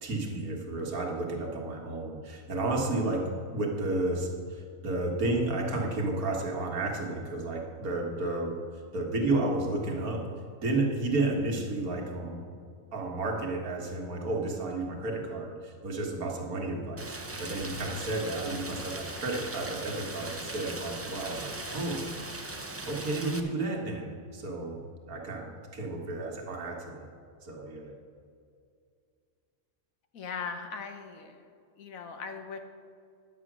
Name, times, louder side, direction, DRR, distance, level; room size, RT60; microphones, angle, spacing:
voice 1, 0.0-8.5 8.9-10.2 10.6-12.4 12.9-22.1 22.9-27.1 27.4-27.9, right 2 dB, 85° right, 0 dB, 2.0 m, -32 dB
Rain, 17.0-23.4, right 2 dB, 25° right, 0.3 m, -39 dB
voice 2, 30.1-31.4 31.8-32.6, left 5 dB, 70° left, 6 dB, 1.4 m, -39 dB
10.5 x 8.3 x 6.1 m, 2.3 s
omnidirectional pair, 1.5 m